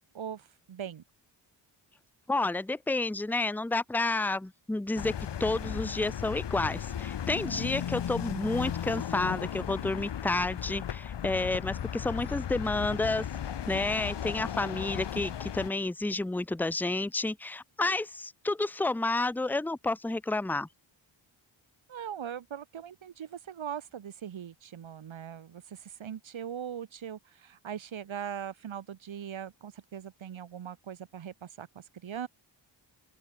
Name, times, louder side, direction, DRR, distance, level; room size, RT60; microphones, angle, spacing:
voice 1, 0.1-1.0 21.9-32.3, right 9 dB, 75° right, 2.0 m, -40 dB
voice 2, 2.3-5.1 5.4-13.3 13.7-20.7, left 2 dB, 5° left, 0.7 m, -30 dB
sound 1, 5.0-15.7, left 9 dB, 60° left, 1.1 m, -36 dB
open air
wide cardioid pair, 145°, 47 cm